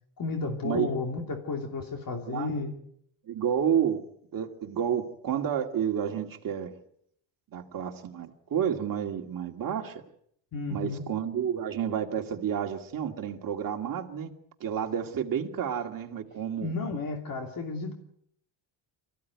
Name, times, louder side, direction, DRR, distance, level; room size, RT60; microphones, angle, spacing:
voice 1, 0.2-2.7 10.5-11.0 16.6-17.9, left 3 dB, 45° left, 3 dB, 2.9 m, -32 dB
voice 2, 3.3-4.0 4.3-6.8 7.5-10.0 10.7-14.3 14.6-16.7, right 8 dB, 45° right, 3 dB, 2.3 m, -30 dB
25.5 x 15.0 x 9.4 m, 0.71 s
cardioid pair, 160°, 48 cm